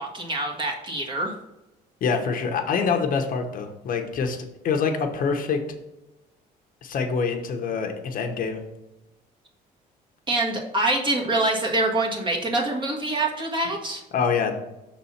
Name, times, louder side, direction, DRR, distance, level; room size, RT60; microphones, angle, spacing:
voice 1, 0.0-1.3 10.3-14.0, right 2 dB, 30° right, 0 dB, 1.6 m, -25 dB
voice 2, 2.0-4.4 4.6-5.6 6.8-8.6 14.1-14.6, left 5 dB, 55° left, 4 dB, 1.0 m, -25 dB
6.0 x 4.1 x 5.8 m, 0.97 s
cardioid pair, 110°, 17 cm